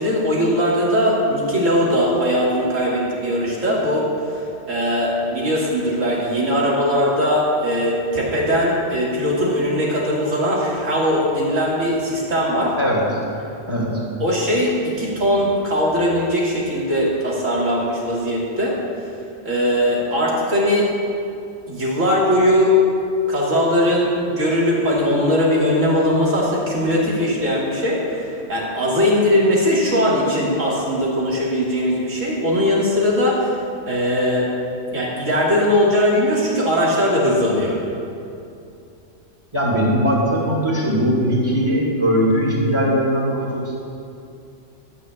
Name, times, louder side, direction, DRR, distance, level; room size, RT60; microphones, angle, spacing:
voice 1, 0.0-4.1 4.7-12.7 13.8-13.9 14.2-18.8 19.4-20.9 21.7-22.7 23.3-33.5 33.9-34.5 34.9-37.8, equal, 85° right, -5 dB, 3.0 m, -20 dB
voice 2, 39.5-43.8, equal, 20° right, -5 dB, 2.5 m, -19 dB
13.5 x 6.4 x 8.4 m, 2.6 s
omnidirectional pair, 1.3 m